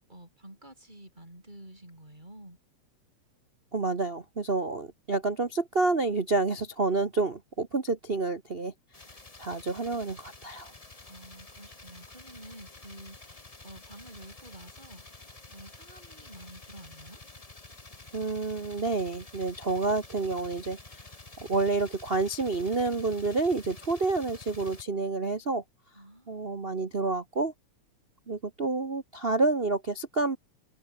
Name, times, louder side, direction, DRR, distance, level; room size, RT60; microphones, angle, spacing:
voice 1, 0.1-2.6 11.0-17.2 25.9-26.6, right 1 dB, 15° right, 7.3 m, -50 dB
voice 2, 3.7-8.7 9.4-10.7 18.1-21.0 21.5-25.6 26.3-27.5 28.3-30.4, right 3 dB, 65° right, 0.5 m, -29 dB
sound 1, 8.9-24.8, left 3 dB, 15° left, 1.3 m, -49 dB
omnidirectional pair, 3.3 m